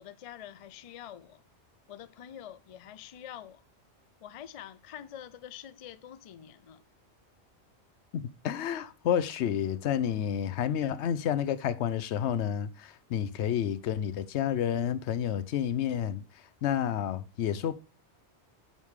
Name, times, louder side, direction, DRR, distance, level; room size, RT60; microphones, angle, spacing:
voice 1, 0.0-1.4 1.9-3.6 4.2-6.8, left 10 dB, 65° left, 0.3 m, -46 dB
voice 2, 8.1-16.2 16.6-17.7, left 9 dB, 80° left, 0.9 m, -30 dB
9.3 x 3.6 x 4.7 m
omnidirectional pair, 1.2 m